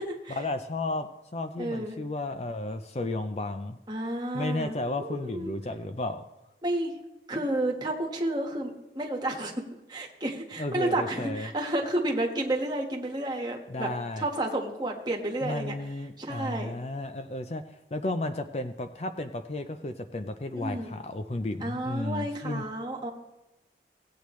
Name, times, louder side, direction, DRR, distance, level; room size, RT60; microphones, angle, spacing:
voice 1, 0.4-3.8 4.3-6.2 10.6-11.5 13.7-14.3 15.4-17.6 17.9-22.6, left 2 dB, 35° left, 8 dB, 0.5 m, -33 dB
voice 2, 1.6-2.0 3.9-4.7 5.0-5.5 6.6-6.9 7.3-9.5 9.9-13.9 14.2-15.8 16.2-16.7 20.6-21.0 21.6-23.1, right 1 dB, 25° right, -1 dB, 1.5 m, -31 dB
17.0 x 8.4 x 3.1 m, 1.0 s
head